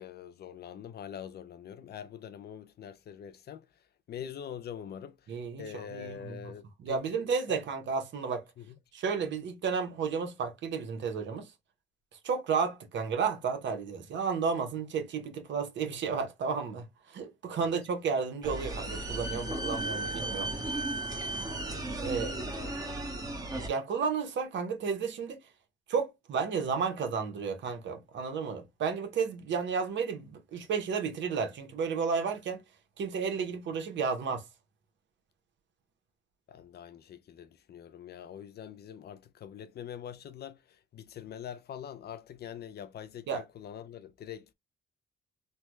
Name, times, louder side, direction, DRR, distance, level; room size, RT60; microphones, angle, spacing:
voice 1, 0.0-3.7 4.1-7.6 8.6-8.7 17.6-17.7 22.0-23.0 36.5-44.5, left 9 dB, 55° left, 0.5 m, -44 dB
voice 2, 5.3-6.5 6.8-8.4 8.9-11.5 12.2-20.5 22.0-22.3 23.7-25.4 25.9-32.6 33.0-34.4 43.3-43.4, right 5 dB, 65° right, 1.0 m, -32 dB
sound 1, 18.4-23.7, right 2 dB, 20° right, 1.0 m, -35 dB
3.4 x 2.2 x 3.0 m
cardioid pair, 90°, 20 cm